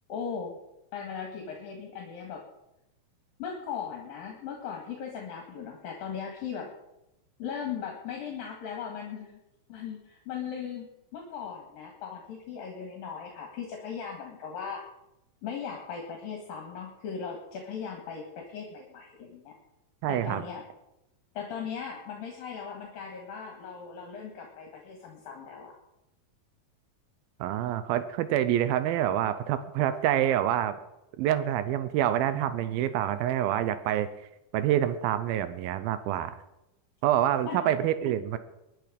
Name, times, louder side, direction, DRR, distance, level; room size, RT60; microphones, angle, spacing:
voice 1, 0.1-0.6 0.9-2.4 3.4-6.7 7.4-9.4 9.7-14.8 15.4-19.5 20.1-20.6 21.4-25.7 37.5-37.6, left 7 dB, 75° left, 1 dB, 3.6 m, -38 dB
voice 2, 20.0-20.4 27.4-30.7 31.2-34.1 34.5-36.4 37.0-38.4, right 11 dB, 85° right, 12 dB, 2.6 m, -27 dB
22.0 x 10.5 x 5.2 m, 0.90 s
omnidirectional pair, 4.2 m